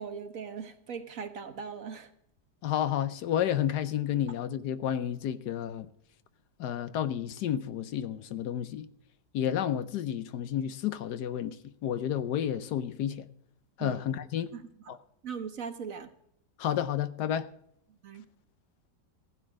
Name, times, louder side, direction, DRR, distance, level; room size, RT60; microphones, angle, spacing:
voice 1, 0.0-2.1 13.8-14.0 14.5-15.0 15.2-16.1 18.0-18.2, right 6 dB, 55° right, 1.4 m, -40 dB
voice 2, 2.6-5.9 6.6-8.9 9.3-11.6 11.8-13.3 13.8-14.5 14.9-15.0 16.6-17.5, left 10 dB, 70° left, 1.2 m, -31 dB
15.5 x 9.9 x 6.4 m
omnidirectional pair, 1.9 m